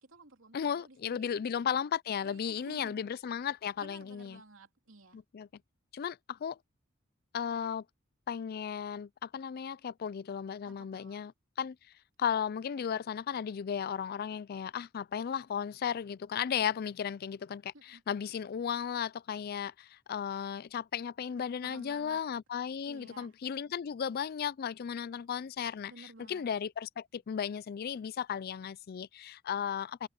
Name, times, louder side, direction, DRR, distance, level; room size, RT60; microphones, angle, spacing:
voice 1, 0.0-1.4 2.2-3.1 3.8-5.2 10.7-11.2 16.6-16.7 17.7-18.0 21.3-22.2 22.9-23.4 25.9-26.4, right 2 dB, 70° right, 3.6 m, -54 dB
voice 2, 0.5-4.4 5.1-5.5 5.9-6.6 7.3-7.8 8.3-11.3 11.6-11.8 12.2-30.1, left 8 dB, 50° left, 0.4 m, -35 dB
head